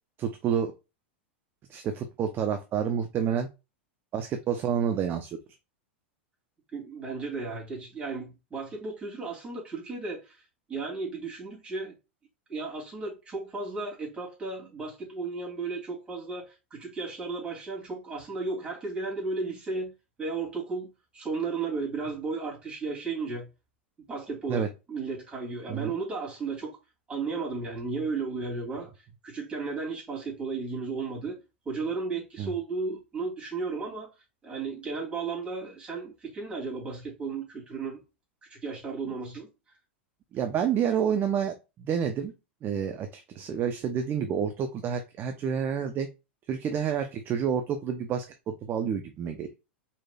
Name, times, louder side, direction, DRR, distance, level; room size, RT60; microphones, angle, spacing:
voice 1, 0.2-0.7 1.7-3.5 4.1-5.4 24.5-24.7 25.7-25.9 32.4-32.5 40.3-42.3 42.6-46.1 46.5-49.5, right 8 dB, 35° right, 0.7 m, -29 dB
voice 2, 6.7-10.4 10.7-11.9 12.5-19.9 20.2-23.5 24.1-26.8 27.1-28.9 29.2-31.4 31.6-34.1 34.4-38.0 38.5-39.5, right 4 dB, 15° right, 2.9 m, -34 dB
4.7 x 4.2 x 2.3 m
hypercardioid pair, 95°, 6 cm